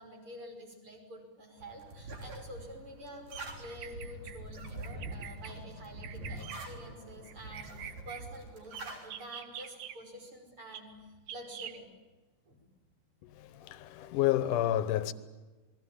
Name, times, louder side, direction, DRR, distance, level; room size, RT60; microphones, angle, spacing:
voice 1, 0.0-10.9 11.3-11.9 12.5-12.6, equal, 40° right, 6.4 m, -48 dB
sound 1, 1.6-9.1, right 2 dB, 60° right, 5.0 m, -44 dB
Bird vocalization bird call bird song, 3.6-4.4 4.8-5.5 6.0-6.6 7.3-8.2 9.0-10.0 10.7-10.8 11.3-11.8, right 9 dB, 85° right, 3.0 m, -45 dB
voice 2, 13.2-15.1, left 12 dB, 75° left, 2.5 m, -30 dB
29.0 x 21.5 x 8.8 m
omnidirectional pair, 3.8 m